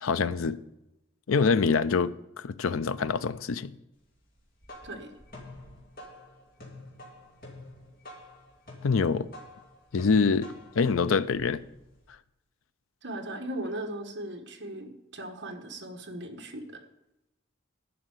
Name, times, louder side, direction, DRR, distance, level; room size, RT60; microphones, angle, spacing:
voice 1, 0.0-0.6 1.3-3.7 8.8-9.3 9.9-11.6, left 5 dB, 85° left, 0.5 m, -25 dB
sound 1, 4.3-12.1, left 1 dB, 45° left, 2.5 m, -48 dB
voice 2, 13.0-16.8, right 1 dB, 55° right, 1.5 m, -38 dB
11.0 x 5.8 x 7.9 m
head